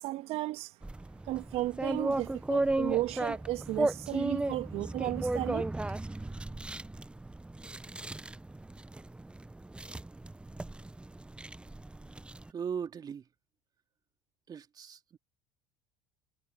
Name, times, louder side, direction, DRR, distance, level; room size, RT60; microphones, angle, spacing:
voice 1, 0.0-0.7 1.3-5.7, right 16 dB, 60° right, 2.0 m, -34 dB
sound 1, 0.8-12.5, right 2 dB, 10° right, 0.9 m, -35 dB
voice 2, 12.5-13.2 14.5-15.2, right 7 dB, 35° right, 2.5 m, -38 dB
hypercardioid pair, 75°, 11 cm